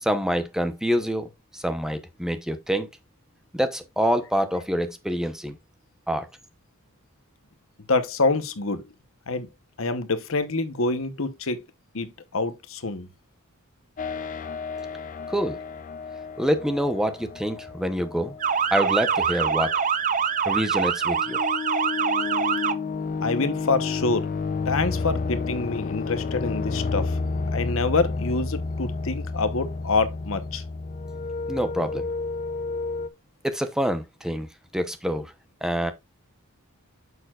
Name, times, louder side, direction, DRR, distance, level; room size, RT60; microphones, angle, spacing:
voice 1, 0.0-2.9 3.5-5.5 6.1-6.3 15.3-15.6 16.4-18.4 18.7-19.7 20.5-21.4 31.5-32.1 33.4-34.5 34.7-35.3 35.6-35.9, equal, 5° right, 0.8 m, -26 dB
voice 2, 7.9-8.8 9.3-9.5 9.8-11.7 11.9-13.1 23.2-24.3 24.6-27.2 27.5-30.6, left 3 dB, 65° left, 1.0 m, -26 dB
sound 1, 14.0-19.9 21.0-33.1, left 4 dB, 40° left, 0.5 m, -31 dB
Motor vehicle (road) / Siren, 18.4-22.7, right 6 dB, 35° right, 0.6 m, -24 dB
8.8 x 6.8 x 2.4 m
head